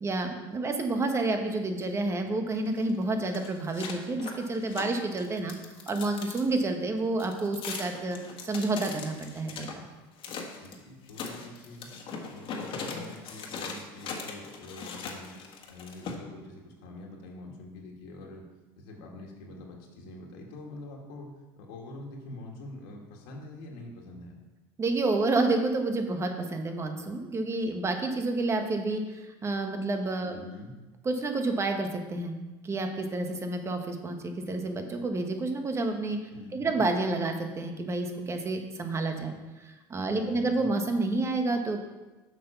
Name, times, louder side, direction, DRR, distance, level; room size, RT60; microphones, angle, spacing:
voice 1, 0.0-5.5 5.9-8.2 8.4-9.8 24.8-30.4 31.0-32.4 32.6-36.2 36.5-41.8, right 2 dB, 25° right, 5 dB, 1.2 m, -29 dB
sound 1, 2.7-6.5 7.2-9.7 10.2-10.8 11.1-16.2, left 5 dB, 45° left, 1.6 m, -40 dB
voice 2, 10.6-11.9 12.3-18.4 18.8-21.3 21.6-24.4 30.2-30.7 36.3-36.8 40.1-40.7, left 2 dB, 80° left, -1 dB, 1.9 m, -45 dB
7.4 x 6.0 x 5.7 m, 1.1 s
supercardioid pair, 115°, 12 cm